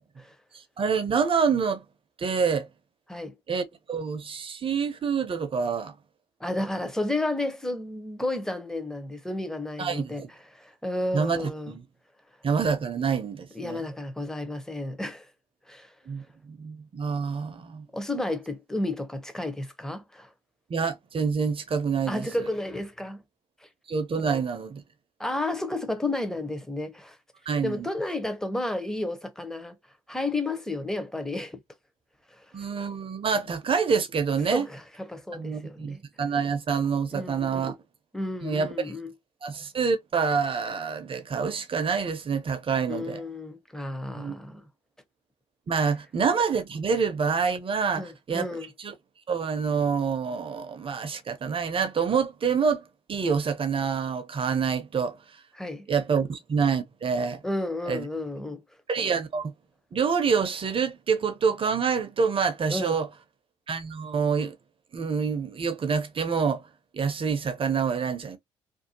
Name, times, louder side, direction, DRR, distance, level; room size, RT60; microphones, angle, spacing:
voice 1, 0.8-1.8 2.2-2.7 3.5-5.9 9.8-10.3 11.1-11.8 12.4-13.8 16.1-16.2 16.5-17.9 20.7-22.3 23.9-24.8 27.5-27.9 32.5-34.7 35.3-37.8 38.4-38.9 39.4-43.2 44.1-44.4 45.7-48.5 48.8-48.9 49.3-52.8 53.1-55.2 55.9-57.4 57.9-58.0 58.9-59.5 59.9-63.1 63.7-64.6 64.9-66.6 66.9-68.4, right 6 dB, 35° right, 0.6 m, -27 dB
voice 2, 6.4-10.2 10.5-11.7 13.5-15.3 15.7-15.9 17.9-20.3 22.1-23.2 24.2-24.4 25.2-27.2 27.6-29.7 30.1-31.6 32.3-32.5 34.5-36.0 37.1-37.7 38.1-39.1 42.9-44.7 47.9-48.7 55.6-55.9 57.4-58.6 62.7-63.0, left 2 dB, 5° left, 0.7 m, -32 dB
2.6 x 2.3 x 2.7 m
hypercardioid pair, 55°, 15 cm